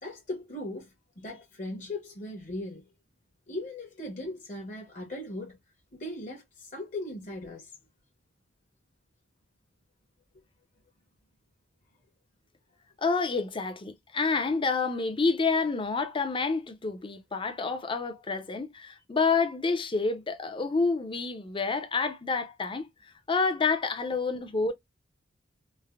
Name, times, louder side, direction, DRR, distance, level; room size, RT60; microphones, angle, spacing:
voice 1, 0.0-2.8 3.5-5.6 5.9-7.7, left 1 dB, 40° left, 0.9 m, -38 dB
voice 2, 13.0-22.9 23.3-24.7, left 4 dB, 25° left, 0.5 m, -28 dB
3.3 x 2.0 x 2.3 m
head